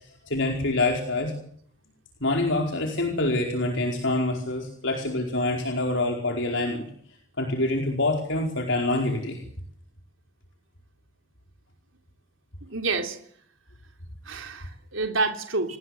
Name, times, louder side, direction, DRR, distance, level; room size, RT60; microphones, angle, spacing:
voice 1, 0.3-1.3 2.2-6.9 7.4-9.4, left 2 dB, 65° left, 2 dB, 4.8 m, -26 dB
voice 2, 12.7-13.2 14.3-15.8, right 3 dB, 75° right, 5 dB, 3.5 m, -28 dB
29.5 x 20.0 x 8.0 m, 0.63 s
head